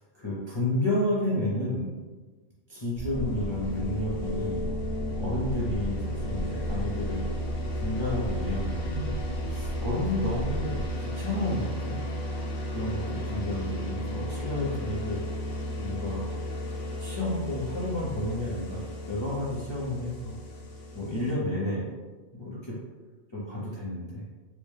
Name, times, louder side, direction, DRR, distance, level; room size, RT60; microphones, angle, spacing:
voice 1, 0.0-1.9 2.7-4.7 5.2-7.2 7.8-9.1 9.5-12.0 12.7-15.2 15.8-16.2 17.0-20.4 20.9-21.9 22.3-22.8 23.3-24.2, left 1 dB, 35° left, -7 dB, 0.4 m, -31 dB
sound 1, 3.0-11.0, equal, 55° left, 0.9 m, -36 dB
sound 2, 3.1-21.3, equal, 85° left, 1.1 m, -34 dB
4.2 x 2.1 x 3.2 m, 1.3 s
omnidirectional pair, 1.3 m